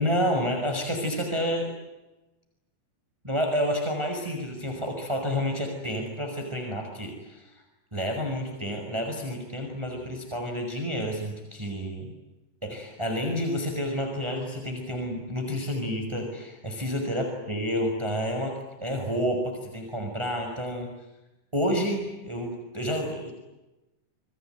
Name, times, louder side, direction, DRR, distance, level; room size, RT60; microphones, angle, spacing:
voice 1, 0.0-1.7 3.2-7.5 7.9-12.1 12.6-18.5 18.8-20.9 21.5-23.3, equal, 10° right, 3 dB, 5.7 m, -29 dB
29.0 x 21.5 x 9.3 m, 1.0 s
omnidirectional pair, 3.7 m